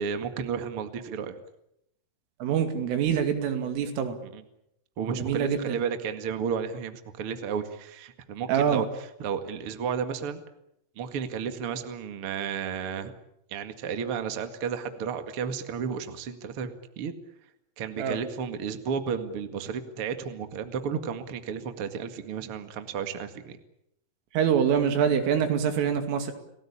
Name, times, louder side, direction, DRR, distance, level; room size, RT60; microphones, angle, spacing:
voice 1, 0.0-1.4 4.3-4.4 5.0-8.9 9.2-10.4 10.9-13.1 13.5-17.1 17.8-23.6, right 7 dB, 50° right, 8 dB, 1.7 m, -32 dB
voice 2, 2.4-4.2 5.1-5.8 8.5-8.8 18.0-18.2 24.3-26.3, right 8 dB, 90° right, 7 dB, 5.1 m, -25 dB
30.0 x 18.5 x 8.7 m, 0.81 s
omnidirectional pair, 5.6 m